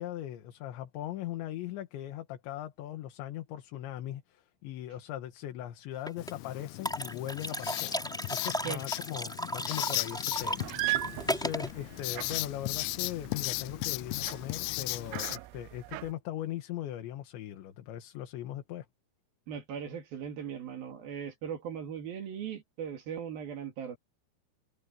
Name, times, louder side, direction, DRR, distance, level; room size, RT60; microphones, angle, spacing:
voice 1, 0.0-7.9 8.3-11.0 11.3-18.9, left 12 dB, 70° left, 3.6 m, -39 dB
sound 1, 6.1-6.3 6.8-11.7, equal, ahead, 3.2 m, -35 dB
Writing, 6.2-15.4, left 22 dB, 85° left, 3.2 m, -37 dB
sound 2, 10.3-16.1, right 20 dB, 85° right, 3.1 m, -39 dB
voice 2, 19.5-24.0, right 8 dB, 55° right, 3.6 m, -39 dB
omnidirectional pair, 5.8 m